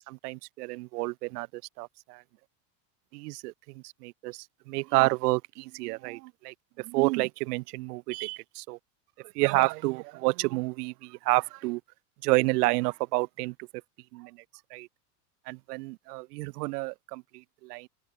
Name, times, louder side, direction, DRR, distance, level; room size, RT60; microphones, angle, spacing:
voice 1, 0.1-1.5 1.8-2.2 3.1-8.8 9.2-11.8 12.2-13.5 14.1-14.4 14.7-14.9 15.5-17.9, right 23 dB, 70° right, 0.9 m, -30 dB
supercardioid pair, 155°, 49 cm